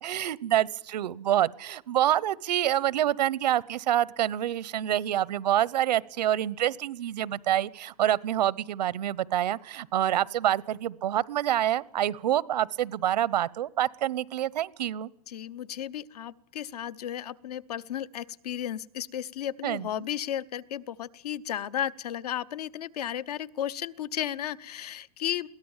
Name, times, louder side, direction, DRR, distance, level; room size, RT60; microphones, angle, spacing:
voice 1, 0.0-15.1 19.6-19.9, right 12 dB, 90° right, 23 dB, 0.9 m, -27 dB
voice 2, 15.3-25.5, left 10 dB, 70° left, 18 dB, 0.8 m, -34 dB
22.5 x 17.5 x 7.3 m, 0.75 s
supercardioid pair, 180°, 21 cm